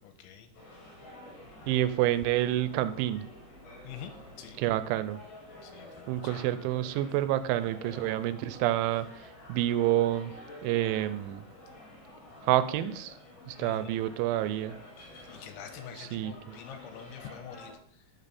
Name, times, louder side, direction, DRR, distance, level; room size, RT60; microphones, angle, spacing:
voice 1, 0.0-0.5 3.8-4.1 4.4-4.6 5.6-6.5 13.6-14.0 15.3-18.1, left 8 dB, 85° left, 7 dB, 3.3 m, -46 dB
sound 1, 0.5-17.7, left 1 dB, 60° left, 4.2 m, -49 dB
voice 2, 1.7-3.2 4.6-5.2 6.1-10.3 10.6-11.4 12.4-13.1 13.5-14.8 16.0-16.3, right 13 dB, 85° right, 13 dB, 3.0 m, -28 dB
12.5 x 5.5 x 4.2 m, 0.64 s
omnidirectional pair, 5.3 m